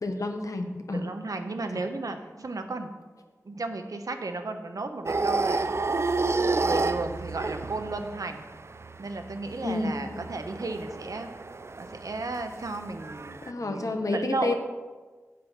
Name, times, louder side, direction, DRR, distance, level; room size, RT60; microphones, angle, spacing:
voice 1, 0.0-1.1 1.7-1.8 9.6-10.2 13.4-14.5, left 2 dB, 70° left, 5 dB, 1.0 m, -30 dB
voice 2, 0.9-2.9 3.4-5.7 6.6-8.4 9.0-11.3 11.8-14.5, right 3 dB, 80° right, 6 dB, 0.9 m, -34 dB
sound 1, 5.1-13.5, right 3 dB, 50° right, 0.4 m, -31 dB
7.7 x 7.5 x 5.7 m, 1.4 s
wide cardioid pair, 65°, 6 cm